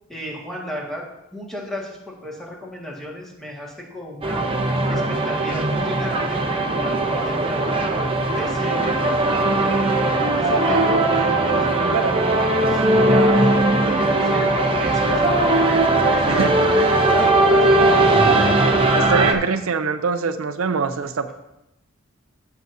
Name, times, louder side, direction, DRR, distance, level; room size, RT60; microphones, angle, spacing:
voice 1, 0.1-1.1 1.3-6.4 6.7-7.9 8.4-9.9 10.3-13.4 13.8-15.5 16.0-18.1, left 1 dB, ahead, -4 dB, 1.7 m, -34 dB
sound 1, 4.2-19.3, right 2 dB, 25° right, 0.7 m, -19 dB
sound 2, 14.2-19.4, left 3 dB, 50° left, 0.8 m, -30 dB
voice 2, 19.0-21.3, right 5 dB, 80° right, 9 dB, 0.5 m, -23 dB
15.5 x 5.8 x 2.7 m, 0.89 s
head